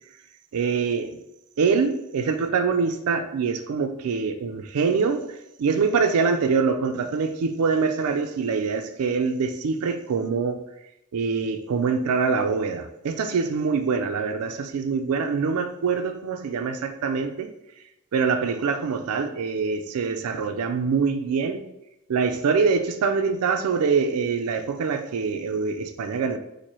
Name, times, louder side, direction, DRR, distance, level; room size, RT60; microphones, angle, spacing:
voice 1, 0.5-1.2 1.6-10.6 11.1-17.5 18.1-21.7 22.1-26.4, right 5 dB, 85° right, 0.4 m, -24 dB
4.3 x 2.6 x 3.0 m
head